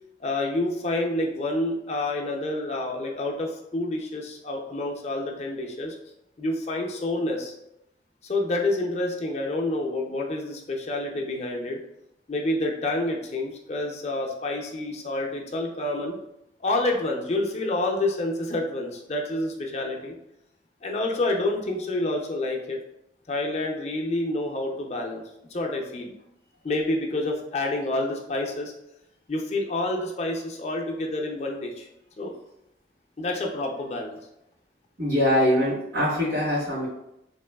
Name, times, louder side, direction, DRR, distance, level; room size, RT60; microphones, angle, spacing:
voice 1, 0.2-6.0 6.4-7.5 8.2-11.8 12.3-16.2 16.6-20.2 20.8-22.8 23.3-25.2 25.5-26.1 26.6-28.7 29.3-31.9 32.2-32.3 33.2-34.2, left 2 dB, 35° left, 1 dB, 0.4 m, -28 dB
voice 2, 35.0-36.9, left 1 dB, 80° right, -12 dB, 1.5 m, -23 dB
3.2 x 2.9 x 2.2 m, 0.83 s
head